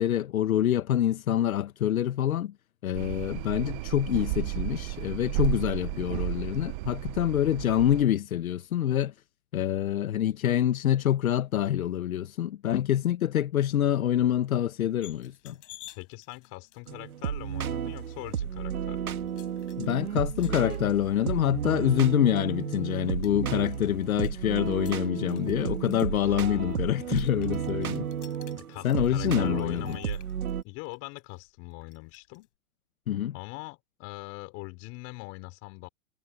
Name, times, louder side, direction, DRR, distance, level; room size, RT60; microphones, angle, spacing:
voice 1, 0.0-2.5 2.8-9.1 9.5-15.6 19.8-28.1 28.8-30.0 33.1-33.3, left 11 dB, 75° left, 1.3 m, -26 dB
sound 1, 2.9-8.0, right 23 dB, 30° right, 0.6 m, -33 dB
voice 2, 5.8-6.3 16.0-19.3 26.3-27.2 28.6-30.2 30.6-32.5 33.3-35.9, left 25 dB, 35° left, 4.3 m, -42 dB
sound 2, 15.0-32.5, left 15 dB, 60° left, 4.2 m, -56 dB
sound 3, 16.9-30.6, right 8 dB, 90° right, 1.9 m, -33 dB
hypercardioid pair, 140°, 42 cm